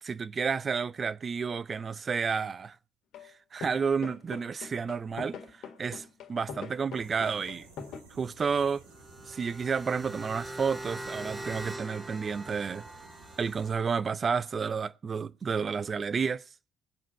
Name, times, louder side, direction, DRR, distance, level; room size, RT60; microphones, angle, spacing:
voice 1, 0.0-2.8 3.5-7.7 8.1-8.8 9.3-12.8 13.4-16.4, right 5 dB, 45° right, 0.7 m, -31 dB
sound 1, 3.1-3.3 3.6-8.0, left 6 dB, 65° left, 1.9 m, -42 dB
sound 2, 6.9-13.7, right 3 dB, 85° right, 2.3 m, -54 dB
sound 3, 8.8-13.9, right 1 dB, 15° right, 2.8 m, -42 dB
20.0 x 7.6 x 4.5 m
hypercardioid pair, 45°, 0 cm